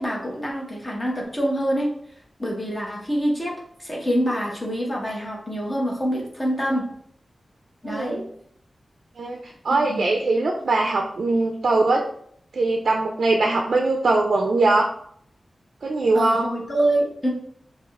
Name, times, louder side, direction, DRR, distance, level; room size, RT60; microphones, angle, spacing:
voice 1, 0.0-1.9 2.4-3.5 3.8-6.8 7.8-8.2 9.8-10.1 16.1-17.3, right 1 dB, 25° left, -2 dB, 0.9 m, -25 dB
voice 2, 7.9-8.2 9.2-9.4 9.6-12.1 12.5-14.9 15.8-16.5, right 2 dB, 80° right, 1 dB, 0.3 m, -21 dB
4.8 x 2.3 x 2.3 m, 0.66 s
wide cardioid pair, 65°, 0 cm